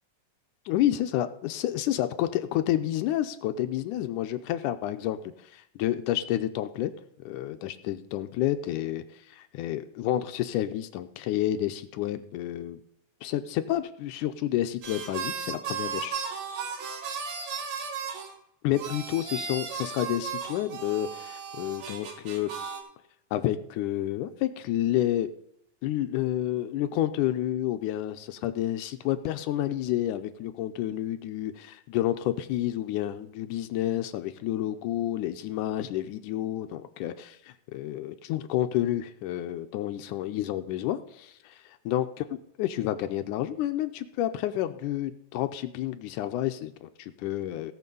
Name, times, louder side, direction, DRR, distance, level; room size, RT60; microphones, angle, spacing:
voice 1, 0.7-6.9 7.2-12.8 13.2-16.2 18.6-22.5 23.3-25.3 25.8-41.6 41.9-42.1 42.3-47.7, left 13 dB, 80° left, 9 dB, 1.9 m, -30 dB
sound 1, 14.8-18.3 18.7-22.8, right 6 dB, 90° right, 3.3 m, -35 dB
17.0 x 6.2 x 5.3 m, 0.75 s
omnidirectional pair, 4.1 m